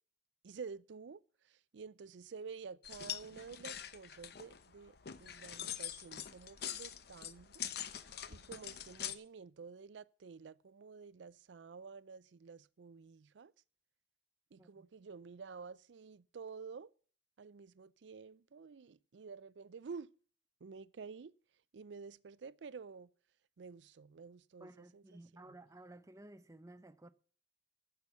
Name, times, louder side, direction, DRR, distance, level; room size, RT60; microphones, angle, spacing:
voice 1, 0.4-13.5 14.5-16.9 17.4-20.1 20.6-21.3 21.7-23.1 23.6-25.6, right 5 dB, 80° right, 0.5 m, -51 dB
sound 1, 2.8-9.2, left 10 dB, 65° left, 0.8 m, -44 dB
voice 2, 14.6-14.9 24.6-27.1, right 1 dB, 20° right, 0.7 m, -55 dB
10.5 x 7.0 x 8.2 m
head